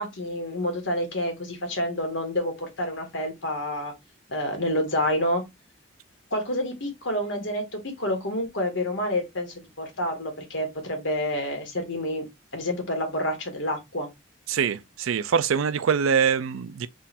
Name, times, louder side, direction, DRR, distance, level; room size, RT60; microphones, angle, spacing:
voice 1, 0.0-3.9 4.3-5.4 6.3-12.3 12.5-14.1, left 1 dB, 70° left, 1.5 m, -28 dB
voice 2, 14.5-16.9, right 7 dB, 90° right, 0.4 m, -24 dB
3.8 x 2.5 x 4.1 m
head